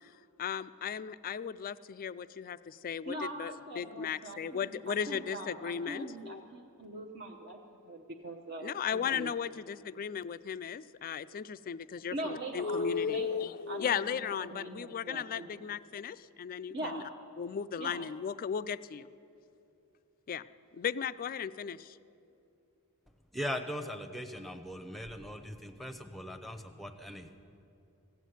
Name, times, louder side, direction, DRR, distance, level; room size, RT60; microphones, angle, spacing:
voice 1, 0.4-6.4 8.6-17.0 17.4-19.1 20.3-20.4 20.7-22.0, left 7 dB, 40° left, 16 dB, 0.3 m, -36 dB
voice 2, 3.1-9.3 12.1-15.7 16.7-17.1 17.8-18.1, right 1 dB, 50° right, 1 dB, 0.9 m, -42 dB
voice 3, 23.3-27.3, equal, ahead, 8 dB, 0.7 m, -40 dB
16.0 x 8.2 x 9.4 m, 2.6 s
head